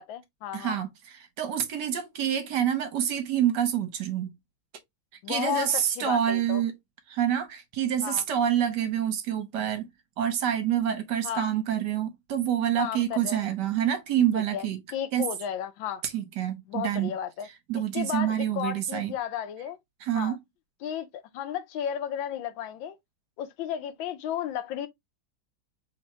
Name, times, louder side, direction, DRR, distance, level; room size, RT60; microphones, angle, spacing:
voice 1, 0.0-0.8 5.2-6.6 8.0-8.2 11.2-11.5 12.8-13.5 14.3-14.7 14.9-16.0 16.7-17.5 17.7-19.8 20.1-20.4 20.8-23.0 23.4-24.9, left 9 dB, 85° left, 1.5 m, -33 dB
voice 2, 0.5-4.3 5.3-6.7 7.1-9.9 10.2-14.8 15.1-15.3 16.1-17.1 17.7-19.1 20.0-20.4, right 10 dB, 65° right, 1.4 m, -27 dB
3.6 x 2.8 x 4.2 m
omnidirectional pair, 2.1 m